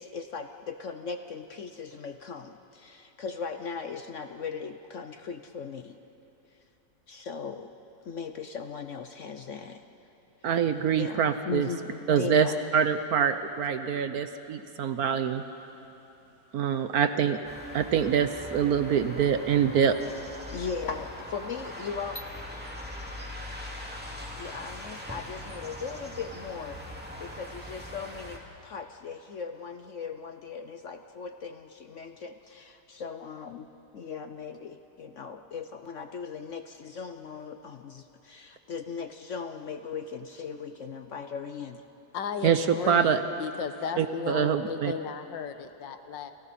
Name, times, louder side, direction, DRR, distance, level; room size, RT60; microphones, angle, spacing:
voice 1, 0.0-6.0 7.1-7.7 8.0-9.8 10.4-10.5 11.0-12.6 16.7-17.2 20.5-22.2 24.4-33.7 33.9-41.8, left 5 dB, 60° left, 8 dB, 0.8 m, -38 dB
voice 2, 10.4-11.7 12.1-12.5 12.7-15.4 16.5-17.4 17.7-20.0 42.4-43.2 44.0-44.9, right 7 dB, 60° right, 10 dB, 1.1 m, -25 dB
sound 1, 17.4-28.4, left 1 dB, 5° right, 2.3 m, -41 dB
voice 3, 42.1-46.3, left 6 dB, 75° left, 9 dB, 1.7 m, -35 dB
29.5 x 29.0 x 4.3 m, 3.0 s
omnidirectional pair, 2.0 m